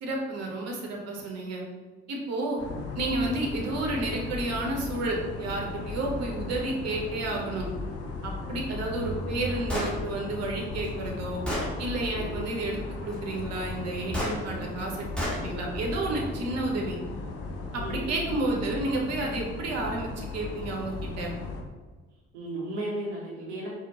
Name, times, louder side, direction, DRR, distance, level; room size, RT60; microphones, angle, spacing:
voice 1, 0.0-1.6 2.1-2.6 2.9-7.7 8.2-11.4 11.8-17.0 17.7-21.3, right 2 dB, 50° right, 0 dB, 0.8 m, -31 dB
sound 1, 2.6-21.6, left 3 dB, 45° left, 0.6 m, -36 dB
Gunshot gunfire, 9.7-9.9 10.8-10.9 11.5-11.7 14.1-14.4 15.2-15.4, left 1 dB, 5° left, 1.1 m, -29 dB
voice 2, 17.7-18.3 22.3-23.7, right 1 dB, 80° right, -5 dB, 0.6 m, -35 dB
4.2 x 2.1 x 2.8 m, 1.3 s
figure-of-eight pair, 40°, 34 cm